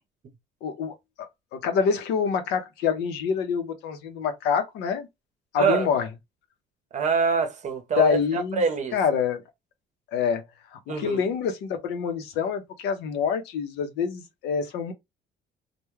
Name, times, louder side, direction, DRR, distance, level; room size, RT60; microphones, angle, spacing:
voice 1, 0.6-5.1 5.5-6.1 8.0-8.6 8.9-9.4 10.1-10.4 10.7-14.9, left 6 dB, 85° left, 0.6 m, -26 dB
voice 2, 6.9-8.2 8.5-9.0 10.9-11.2, right 5 dB, 45° right, 0.7 m, -24 dB
2.2 x 2.1 x 3.0 m
cardioid pair, 110°, 17 cm